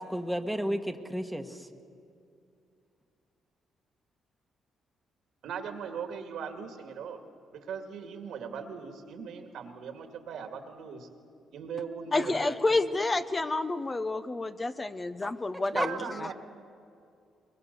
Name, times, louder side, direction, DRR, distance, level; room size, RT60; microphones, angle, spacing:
voice 1, 0.0-1.7 15.2-15.3 15.7-15.9, equal, ahead, 4 dB, 1.4 m, -32 dB
voice 2, 5.4-7.2 7.5-11.1 11.5-12.7 15.7-16.3, right 6 dB, 75° right, 6 dB, 2.2 m, -39 dB
voice 3, 12.1-16.3, left 2 dB, 25° left, 11 dB, 0.8 m, -29 dB
22.5 x 22.0 x 6.9 m, 2.5 s
cardioid pair, 90°, 0 cm